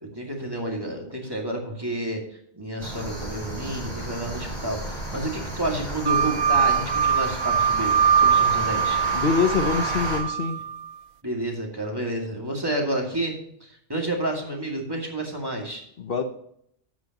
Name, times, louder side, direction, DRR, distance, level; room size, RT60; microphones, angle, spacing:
voice 1, 0.0-2.2 2.5-9.0 11.2-15.8, right 1 dB, 20° right, 0 dB, 2.2 m, -30 dB
sound 1, 2.8-10.2, right 1 dB, 40° right, 3.9 m, -33 dB
sound 2, 6.1-10.9, right 7 dB, 55° right, 0.5 m, -22 dB
voice 2, 9.1-10.6 16.0-16.2, left 5 dB, 60° left, 6 dB, 1.0 m, -24 dB
12.0 x 8.4 x 2.9 m, 0.70 s
omnidirectional pair, 1.1 m